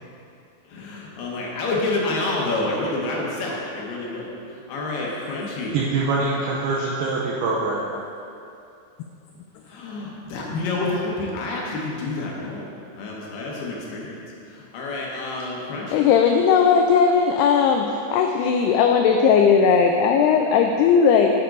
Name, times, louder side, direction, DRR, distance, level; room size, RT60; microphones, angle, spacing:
voice 1, 0.7-5.8 9.6-12.7 12.9-14.1 14.5-16.1, left 2 dB, 70° left, -3 dB, 3.0 m, -28 dB
voice 2, 5.7-7.9, right 3 dB, 80° right, -4 dB, 2.3 m, -24 dB
voice 3, 15.9-21.3, left 6 dB, 90° left, 4 dB, 2.3 m, -17 dB
9.5 x 8.5 x 4.0 m, 2.6 s
omnidirectional pair, 5.2 m